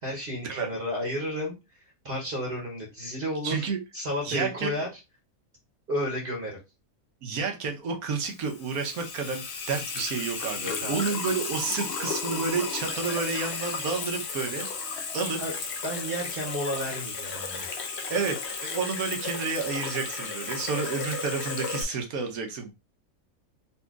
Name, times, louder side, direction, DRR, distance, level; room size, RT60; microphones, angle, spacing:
voice 1, 0.0-3.7 3.9-4.9 5.9-6.6 10.6-11.2 15.4-15.5 15.8-17.7, equal, 45° right, -1 dB, 1.0 m, -32 dB
voice 2, 3.4-3.8 4.2-4.8 7.2-14.7 15.1-15.4 18.1-22.7, right 5 dB, 85° right, 3 dB, 1.3 m, -30 dB
Water tap faucet / Sink (filling or washing), 8.2-21.8, left 4 dB, 55° left, 0.8 m, -34 dB
4.1 x 2.6 x 2.4 m, 0.25 s
omnidirectional pair, 1.5 m